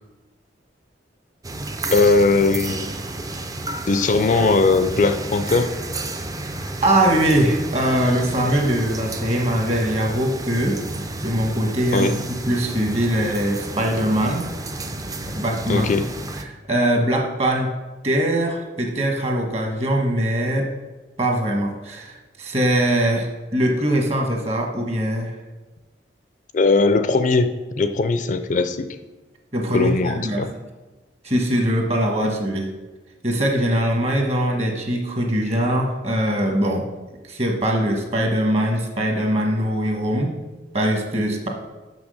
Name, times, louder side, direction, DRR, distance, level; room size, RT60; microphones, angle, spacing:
sound 1, 1.4-16.4, right 2 dB, 20° right, 0.5 m, -31 dB
voice 1, 1.9-2.9 3.9-5.7 11.9-12.1 15.7-16.0 26.5-28.9 29.7-30.5, left 3 dB, 45° left, 9 dB, 0.4 m, -19 dB
voice 2, 6.6-10.8 11.2-14.5 15.3-15.9 16.4-17.7 18.0-20.7 21.2-25.4 29.5-30.5 31.2-32.7 33.2-36.9 37.2-40.3 40.7-41.5, right 1 dB, 35° right, 2 dB, 1.3 m, -22 dB
6.1 x 6.1 x 6.4 m, 1.2 s
head